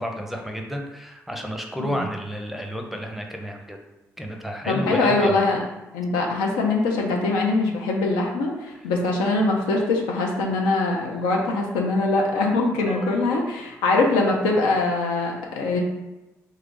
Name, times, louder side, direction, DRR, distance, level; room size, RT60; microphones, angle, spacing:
voice 1, 0.0-3.8 4.2-5.4 12.8-13.2, equal, 5° right, 2 dB, 0.6 m, -31 dB
voice 2, 4.7-5.6 5.9-15.8, left 3 dB, 80° left, 0 dB, 0.6 m, -22 dB
3.1 x 2.3 x 3.7 m, 1.0 s
hypercardioid pair, 45°, 8 cm